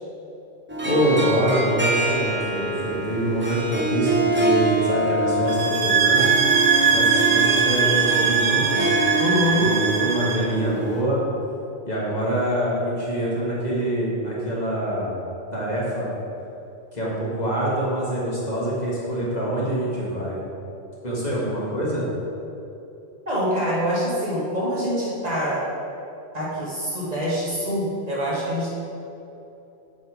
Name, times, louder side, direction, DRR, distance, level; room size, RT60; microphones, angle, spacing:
Harp, 0.7-11.0, right 2 dB, 10° right, 0.7 m, -25 dB
voice 1, 0.8-6.4 6.8-8.9 9.5-11.2 11.9-15.2 15.5-16.1 16.9-20.4 21.0-22.0, right 1 dB, 40° left, -6 dB, 1.7 m, -25 dB
sound 1, 5.5-10.5, right 6 dB, 90° right, 1.0 m, -21 dB
voice 2, 9.2-9.7 23.3-25.7 26.3-28.7, equal, 35° right, -8 dB, 2.1 m, -25 dB
7.8 x 5.4 x 4.9 m, 2.9 s
omnidirectional pair, 1.1 m